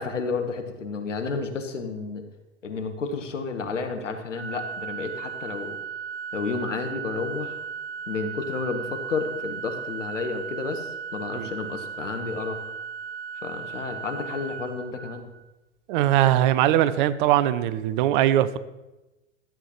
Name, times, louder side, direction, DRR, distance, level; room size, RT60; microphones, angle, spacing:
voice 1, 0.0-2.2 2.6-5.8 6.3-7.6 8.1-12.6 13.4-15.3, left 4 dB, 80° left, 6 dB, 1.2 m, -31 dB
Organ, 4.4-15.4, right 7 dB, 80° right, 3.0 m, -36 dB
voice 2, 15.9-18.6, right 12 dB, 45° right, 15 dB, 0.5 m, -21 dB
12.5 x 7.9 x 3.0 m, 1.0 s
figure-of-eight pair, 90°, 36 cm